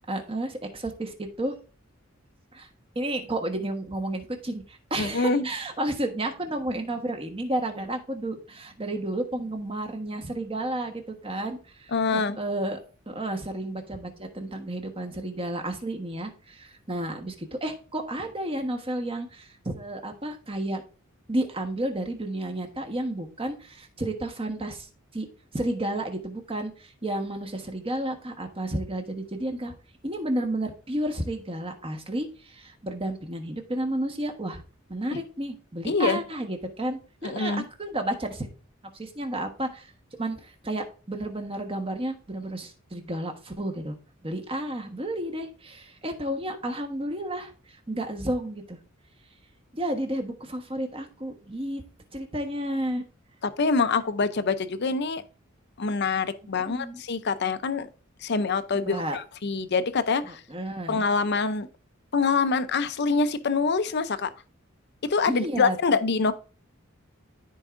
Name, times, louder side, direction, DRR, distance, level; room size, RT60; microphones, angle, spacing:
voice 1, 0.1-1.6 2.5-2.7 2.9-12.8 13.1-20.8 21.3-24.9 25.1-25.3 25.5-29.7 30.0-34.6 34.9-38.5 38.9-43.9 44.2-48.8 49.7-51.8 52.1-53.0 56.6-57.0 58.8-59.2 60.3-61.1 65.3-65.8, right 1 dB, 25° right, 1.3 m, -32 dB
voice 2, 5.0-5.5 11.9-12.4 35.1-35.2 35.8-36.2 37.2-37.6 53.4-55.2 55.8-57.9 58.2-60.4 60.9-61.7 62.1-64.3 65.0-66.3, left 4 dB, 55° left, 0.6 m, -25 dB
13.5 x 4.6 x 2.5 m
head